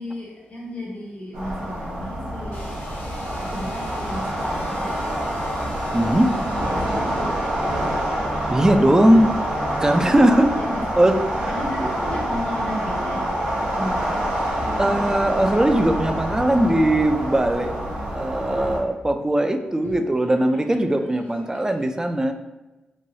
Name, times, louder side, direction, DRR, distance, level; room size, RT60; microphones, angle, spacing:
voice 1, 0.0-2.7 3.4-5.1 6.1-7.9 10.5-11.1 11.5-14.2 14.5-15.3 20.2-20.3 20.7-20.8 21.3-21.9, left 1 dB, 40° left, -3 dB, 0.7 m, -35 dB
sound 1, 1.3-18.8, right 1 dB, 90° right, 0.8 m, -26 dB
sound 2, 2.5-10.0, left 1 dB, 75° left, 0.8 m, -39 dB
voice 2, 5.9-6.3 8.5-9.3 9.8-10.6 11.0-11.5 14.8-17.7 18.1-22.3, right 1 dB, 15° right, 7 dB, 0.3 m, -19 dB
3.1 x 2.2 x 2.7 m, 1.1 s
supercardioid pair, 50°, 4 cm